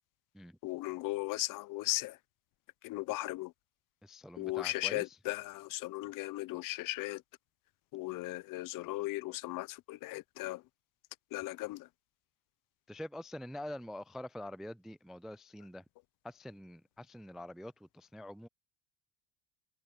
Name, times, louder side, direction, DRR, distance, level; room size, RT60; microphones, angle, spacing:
voice 1, 0.6-2.2 2.8-3.5 4.4-7.2 7.9-10.6 11.3-11.9, left 19 dB, 50° left, 0.9 m, -37 dB
voice 2, 4.0-5.2 12.9-15.8 16.2-18.5, left 1 dB, ahead, 0.3 m, -45 dB
hypercardioid pair, 85°, 41 cm